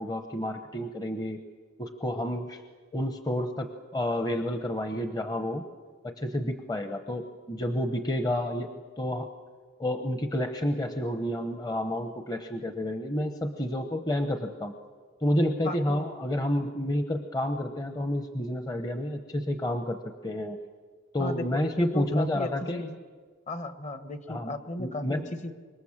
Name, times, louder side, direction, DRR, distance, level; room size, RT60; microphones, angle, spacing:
voice 1, 0.0-1.4 1.8-2.6 2.9-5.6 6.0-8.7 9.0-9.3 9.8-14.7 15.2-20.6 21.1-22.8 24.3-24.5 24.8-25.3, left 1 dB, 20° left, 6 dB, 1.0 m, -30 dB
voice 2, 15.6-16.1 21.2-23.0 23.5-25.5, left 1 dB, 35° left, 9 dB, 1.3 m, -35 dB
26.0 x 22.0 x 7.4 m, 1.5 s
head